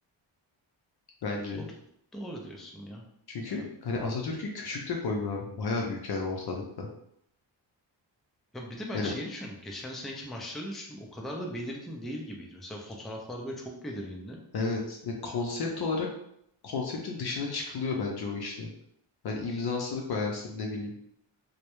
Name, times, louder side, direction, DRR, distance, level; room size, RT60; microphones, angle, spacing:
voice 1, 1.2-1.6 3.3-6.9 8.9-9.1 14.5-16.1 16.6-18.7 19.2-20.9, left 3 dB, 55° left, 0 dB, 0.5 m, -32 dB
voice 2, 2.1-3.0 3.5-3.7 8.5-14.4 19.4-19.6, equal, ahead, 0 dB, 0.3 m, -39 dB
2.2 x 2.0 x 2.9 m, 0.73 s
cardioid pair, 80°, 47 cm